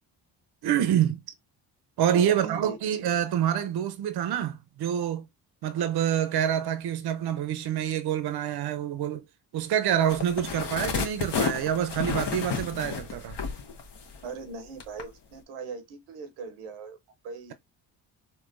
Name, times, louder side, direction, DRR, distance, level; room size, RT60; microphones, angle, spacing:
voice 1, 0.6-1.2 2.0-5.2 5.6-9.2 9.5-13.4, right 10 dB, 50° right, 0.6 m, -27 dB
voice 2, 2.1-2.8 14.2-17.0 17.2-17.5, right 4 dB, 85° right, 0.8 m, -39 dB
sound 1, 10.1-14.4 14.8-15.0, left 6 dB, 60° left, 0.9 m, -31 dB
3.7 x 2.1 x 2.5 m
supercardioid pair, 55°, 48 cm